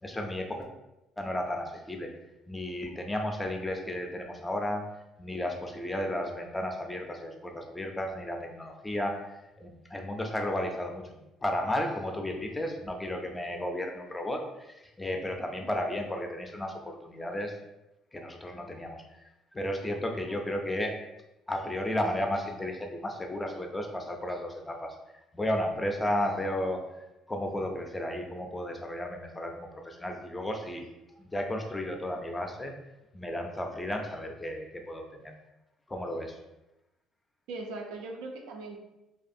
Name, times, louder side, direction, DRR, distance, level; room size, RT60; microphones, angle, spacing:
voice 1, 0.0-0.7 1.2-2.1 2.5-4.8 5.2-9.1 9.6-17.5 18.1-19.2 19.5-20.9 21.5-24.9 25.3-26.8 27.3-30.8 31.3-32.7 33.1-35.3 35.9-36.3, left 1 dB, 15° left, 3 dB, 0.4 m, -33 dB
voice 2, 37.5-38.8, right 3 dB, 85° right, 2 dB, 0.4 m, -40 dB
2.5 x 2.3 x 2.6 m, 0.94 s
cardioid pair, 100°, 0 cm